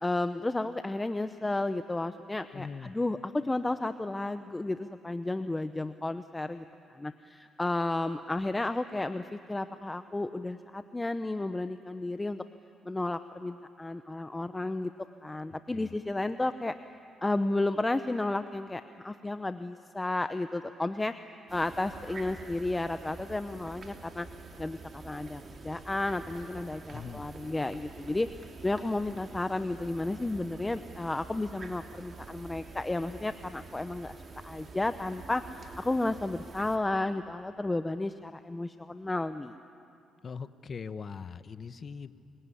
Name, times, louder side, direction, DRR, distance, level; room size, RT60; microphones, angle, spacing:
voice 1, 0.0-6.6 6.9-12.4 12.9-14.9 15.2-16.7 17.2-21.1 21.5-24.3 24.6-28.3 28.6-34.2 34.4-39.6, left 2 dB, 15° left, 10 dB, 0.7 m, -32 dB
voice 2, 2.5-2.9 15.5-15.9 26.9-27.2 40.2-42.1, left 5 dB, 45° left, 13 dB, 1.0 m, -41 dB
sound 1, 21.5-36.8, right 4 dB, 40° right, 3.0 m, -47 dB
24.5 x 23.0 x 9.9 m, 2.6 s
cardioid pair, 90°, 0 cm